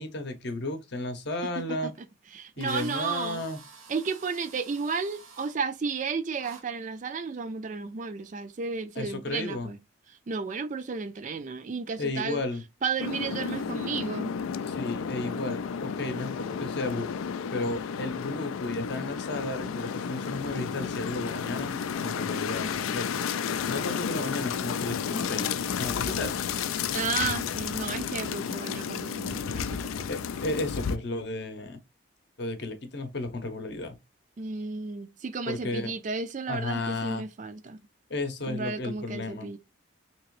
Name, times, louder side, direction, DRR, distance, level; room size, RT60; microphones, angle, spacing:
voice 1, 0.0-1.9 2.6-3.6 9.0-9.7 12.0-12.6 14.7-17.1 17.5-23.2 23.7-25.5 25.8-26.4 30.1-31.8 32.4-34.0 35.5-35.9 36.5-37.2 38.1-39.5, left 2 dB, 55° left, 0.7 m, -33 dB
Drill, 1.9-2.0 2.6-5.5 6.4-6.6, right 5 dB, 80° right, 1.0 m, -49 dB
voice 2, 2.3-3.4 3.9-9.8 10.3-12.4 12.8-14.4 26.9-30.1 34.4-37.8 38.5-39.6, right 5 dB, 35° right, 0.3 m, -33 dB
sound 1, 13.0-31.0, left 7 dB, 80° left, 0.3 m, -32 dB
3.5 x 2.9 x 3.0 m
head